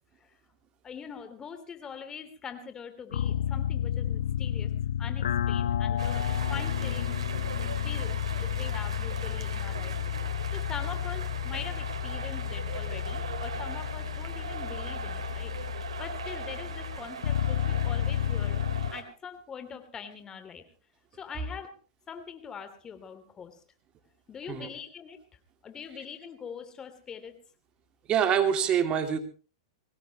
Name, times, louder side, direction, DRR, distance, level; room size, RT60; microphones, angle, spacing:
voice 1, 0.8-4.7 5.0-7.2 7.8-18.6 18.9-20.6 21.2-21.7 22.1-23.6 24.3-25.2 25.6-27.4, left 6 dB, 20° left, 9 dB, 2.9 m, -43 dB
sound 1, 3.1-18.9, left 10 dB, 75° left, 0.8 m, -31 dB
sound 2, 6.0-19.0, right 6 dB, 80° right, 4.0 m, -40 dB
voice 2, 28.1-29.2, right 8 dB, 30° right, 7 dB, 2.5 m, -25 dB
23.0 x 18.5 x 3.0 m, 0.35 s
hypercardioid pair, 115°, 3 cm